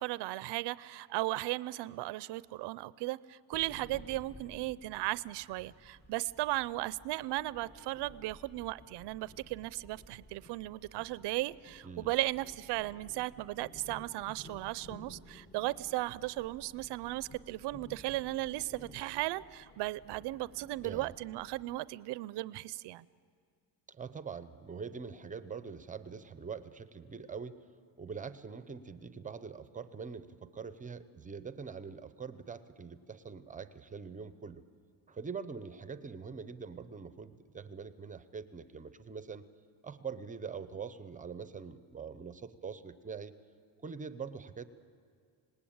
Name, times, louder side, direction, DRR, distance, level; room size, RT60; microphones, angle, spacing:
voice 1, 0.0-23.1, right 18 dB, 65° right, 18 dB, 0.5 m, -36 dB
sound 1, 3.5-21.8, left 1 dB, 20° left, 0.9 m, -55 dB
voice 2, 23.9-27.7 28.0-34.6 35.1-39.4 39.8-43.3 43.8-44.6, right 5 dB, 20° right, 12 dB, 0.5 m, -44 dB
26.0 x 19.5 x 8.7 m, 2.2 s
cardioid pair, 170°, 44 cm